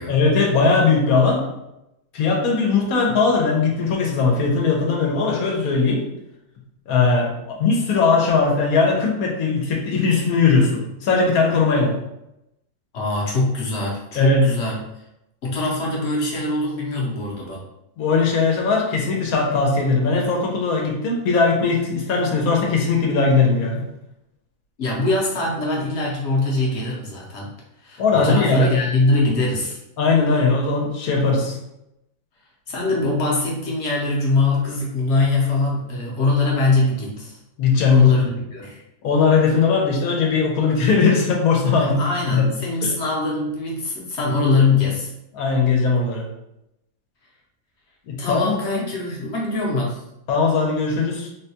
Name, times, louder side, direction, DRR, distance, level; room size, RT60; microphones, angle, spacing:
voice 1, 0.1-1.4 2.1-6.0 6.9-12.0 14.2-14.4 18.0-23.8 28.0-28.7 30.0-31.6 37.6-38.3 39.0-42.0 42.3-42.4 42.8-42.9 45.4-46.3 48.1-48.6 50.3-51.3, left 4 dB, 80° left, 1 dB, 1.2 m, -19 dB
voice 2, 12.9-14.8 15.4-17.6 24.8-27.5 27.8-29.8 32.7-37.4 37.9-38.2 38.5-38.8 41.8-45.1 48.2-50.0, left 3 dB, 55° left, -3 dB, 1.0 m, -22 dB
3.7 x 2.2 x 2.8 m, 0.86 s
omnidirectional pair, 1.5 m